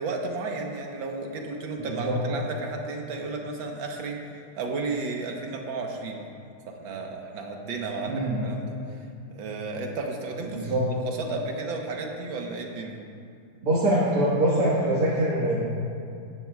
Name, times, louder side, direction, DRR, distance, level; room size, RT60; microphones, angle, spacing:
voice 1, 0.0-4.2 4.6-6.3 6.7-8.7 9.3-13.0, right 3 dB, 65° right, 2 dB, 1.7 m, -33 dB
voice 2, 1.8-2.2 8.0-8.4 10.5-10.8 13.6-15.6, right 1 dB, 80° right, -8 dB, 2.5 m, -24 dB
16.5 x 11.0 x 2.3 m, 2.5 s
omnidirectional pair, 2.4 m